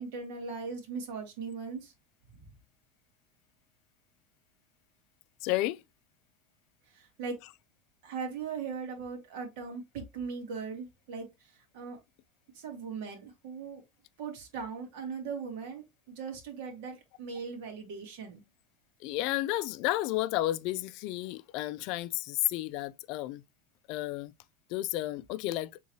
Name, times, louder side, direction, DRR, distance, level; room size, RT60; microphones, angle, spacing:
voice 1, 0.0-1.9 2.3-2.4 6.9-7.4 8.0-12.0 12.5-13.8 14.2-18.4, right 5 dB, 65° right, 2.0 m, -39 dB
voice 2, 5.4-5.8 19.0-23.4 23.9-24.3 24.7-25.7, left 16 dB, 50° left, 0.4 m, -32 dB
4.6 x 3.7 x 2.8 m
supercardioid pair, 160°, 0 cm